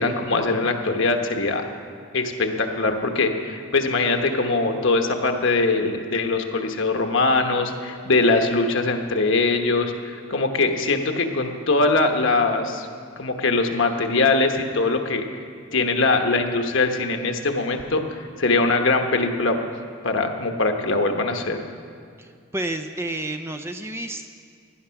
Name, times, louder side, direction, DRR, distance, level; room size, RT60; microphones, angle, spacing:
voice 1, 0.0-1.6 2.1-12.9 13.2-15.2 15.7-19.6 20.0-21.6, left 3 dB, 60° left, 5 dB, 1.2 m, -22 dB
voice 2, 22.2-24.3, right 1 dB, 10° right, 7 dB, 0.5 m, -30 dB
17.5 x 11.0 x 5.8 m, 2.2 s
head